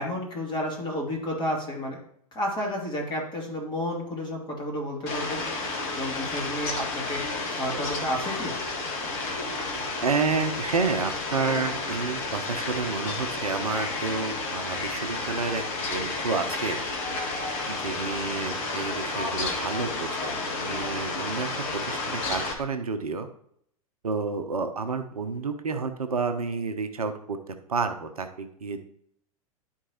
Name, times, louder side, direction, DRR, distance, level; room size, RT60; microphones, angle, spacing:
voice 1, 0.0-2.0 2.3-5.4 6.0-7.2 7.5-8.5, equal, 25° left, -1 dB, 2.8 m, -31 dB
Fowl, 5.1-22.5, left 3 dB, 40° left, 1.7 m, -31 dB
voice 2, 10.0-15.6 15.9-16.8 17.7-20.3 20.6-23.3 24.0-28.8, right 4 dB, 75° right, 7 dB, 0.8 m, -30 dB
11.0 x 4.5 x 3.0 m, 0.68 s
figure-of-eight pair, 95°, 19 cm